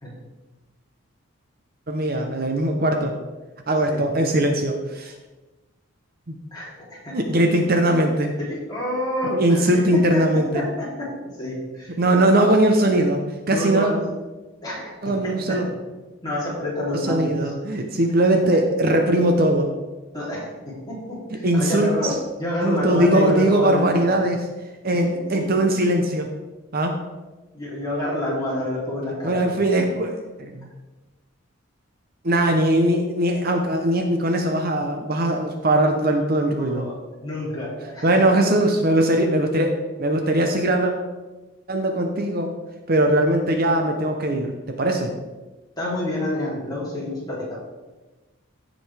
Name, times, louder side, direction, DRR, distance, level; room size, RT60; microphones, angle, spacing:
voice 1, 1.9-3.1 3.7-5.1 6.3-6.4 7.1-8.3 9.4-10.6 12.0-13.2 13.5-13.9 15.0-15.6 16.9-19.7 21.4-22.2 22.6-24.4 24.8-26.3 26.7-27.0 29.2-30.1 30.4-30.7 32.2-36.9 38.0-39.7 40.0-40.9 41.7-42.5 42.9-44.5 44.8-45.1, right 1 dB, 45° right, 3 dB, 0.7 m, -20 dB
voice 2, 6.5-7.2 8.5-11.1 11.4-11.9 13.4-14.1 14.6-15.8 16.2-17.5 20.1-24.2 24.9-25.0 25.3-25.4 27.5-29.9 36.6-38.2 45.8-47.6, left 1 dB, 20° left, -7 dB, 2.9 m, -28 dB
15.0 x 5.1 x 3.4 m, 1.2 s
head